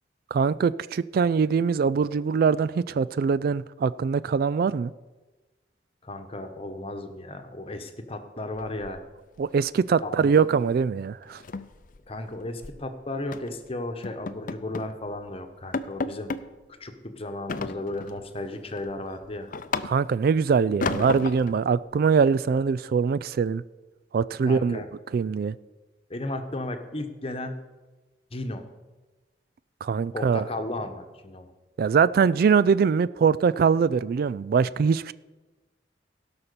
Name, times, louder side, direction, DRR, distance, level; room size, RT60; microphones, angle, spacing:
voice 1, 0.3-4.9 9.4-11.4 19.8-23.6 24.1-24.8 25.1-25.5 29.8-30.4 31.8-35.1, right 6 dB, 55° right, 0.3 m, -23 dB
voice 2, 6.0-9.0 10.0-10.3 12.1-16.3 16.8-19.5 24.4-24.9 26.1-27.6 28.3-28.7 30.1-31.5, left 2 dB, 35° left, 1.1 m, -34 dB
sound 1, 8.6-9.4 9.7-9.9 10.2-10.4 10.7-10.8 11.2-12.8 13.3-13.6 14.0-15.0 15.3-15.4 15.7-16.5 17.5-18.2 18.7-20.3 20.8-21.6, left 4 dB, 50° left, 0.5 m, -33 dB
17.0 x 5.8 x 6.8 m
head